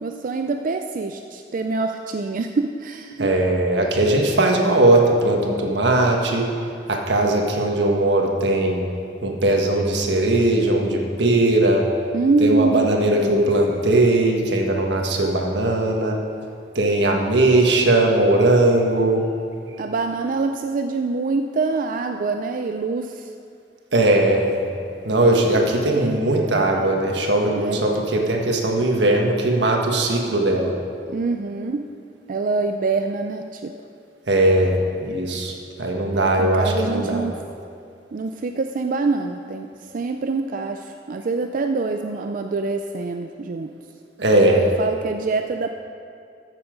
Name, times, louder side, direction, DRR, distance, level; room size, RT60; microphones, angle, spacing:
voice 1, 0.0-3.3 12.1-13.5 19.8-23.3 25.6-26.2 27.5-27.8 31.1-31.9 32.3-33.7 36.1-37.4 38.1-39.7 39.9-43.7 44.4-45.7, right 3 dB, 50° right, 6 dB, 0.4 m, -25 dB
voice 2, 3.2-6.5 6.9-8.8 9.2-11.9 12.4-16.2 16.7-19.2 23.9-24.7 25.0-30.7 34.3-35.5 35.8-37.2 44.2-44.6, right 1 dB, 85° right, 1 dB, 1.4 m, -19 dB
14.0 x 7.1 x 5.1 m, 2.5 s
head